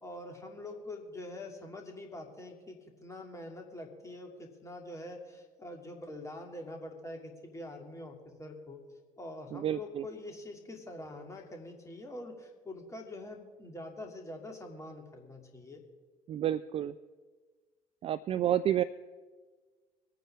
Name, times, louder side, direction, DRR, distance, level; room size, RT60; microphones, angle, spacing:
voice 1, 0.0-8.8 9.2-15.8, left 1 dB, 15° left, 2 dB, 2.7 m, -45 dB
voice 2, 9.5-10.0 16.3-17.0 18.0-18.8, right 11 dB, 30° right, 16 dB, 0.4 m, -30 dB
23.5 x 9.3 x 3.6 m, 1.4 s
figure-of-eight pair, 55°, 18 cm